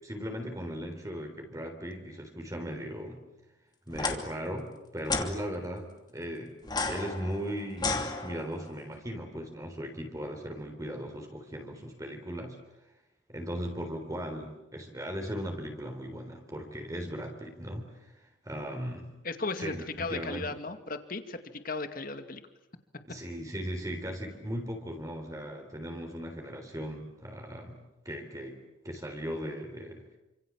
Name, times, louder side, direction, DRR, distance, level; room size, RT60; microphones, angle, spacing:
voice 1, 0.0-3.2 3.9-6.6 6.9-12.6 13.3-19.2 19.6-20.5 23.0-30.1, equal, 20° right, 3 dB, 3.8 m, -38 dB
sound 1, 3.9-4.2 5.0-5.3 6.6-8.7, left 3 dB, 25° left, 2.8 m, -32 dB
voice 2, 19.2-22.4, left 3 dB, 50° left, 8 dB, 2.3 m, -36 dB
29.0 x 26.5 x 7.5 m, 0.96 s
head